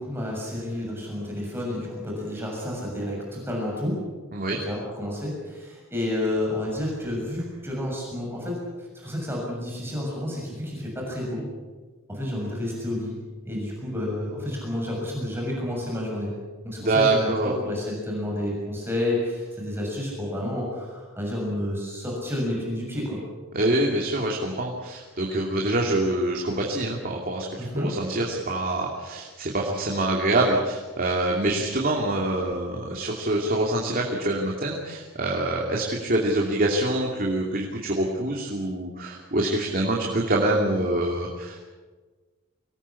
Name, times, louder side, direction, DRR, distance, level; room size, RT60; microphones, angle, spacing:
voice 1, 0.0-4.0 4.6-11.4 12.1-13.2 13.5-16.3 16.6-23.2 27.6-27.9, left 1 dB, 10° right, -3 dB, 6.9 m, -30 dB
voice 2, 16.8-17.5 23.5-41.7, right 1 dB, 45° right, -1 dB, 2.8 m, -25 dB
24.5 x 19.5 x 8.5 m, 1.4 s
head